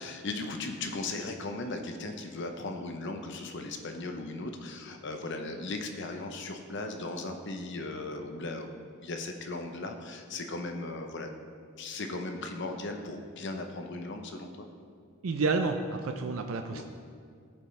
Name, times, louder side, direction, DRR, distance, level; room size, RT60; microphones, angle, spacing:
voice 1, 0.0-11.3 11.8-14.7 16.7-16.8, left 2 dB, 60° left, 5 dB, 0.7 m, -37 dB
voice 2, 15.2-16.8, right 3 dB, 90° right, 6 dB, 0.5 m, -29 dB
16.5 x 5.5 x 3.3 m, 2.3 s
head